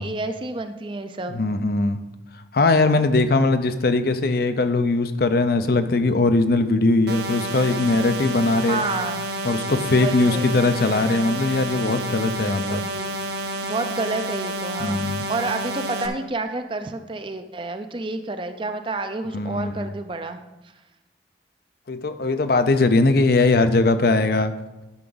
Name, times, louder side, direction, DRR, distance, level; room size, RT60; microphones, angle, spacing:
voice 1, 0.0-1.4 8.6-9.2 9.9-10.6 12.4-13.2 13.6-20.4, right 3 dB, 25° right, 8 dB, 0.5 m, -30 dB
voice 2, 1.3-2.0 2.5-8.8 9.4-12.8 14.8-15.3 19.3-19.9 21.9-24.5, left 2 dB, 55° left, 10 dB, 0.5 m, -20 dB
sound 1, 7.1-16.1, right 1 dB, 60° right, 0.8 m, -29 dB
11.0 x 5.8 x 3.9 m, 1.0 s
head